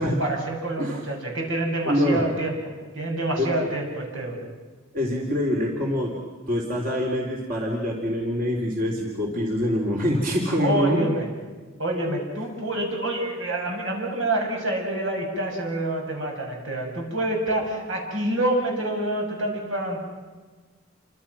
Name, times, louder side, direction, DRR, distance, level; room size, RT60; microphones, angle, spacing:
voice 1, 0.0-4.4 10.6-11.3 11.8-20.0, right 1 dB, 80° right, 0 dB, 7.3 m, -27 dB
voice 2, 1.8-2.2 3.4-3.5 4.9-6.1 6.5-11.1, equal, 45° right, -1 dB, 3.7 m, -25 dB
29.0 x 26.0 x 6.2 m, 1.4 s
head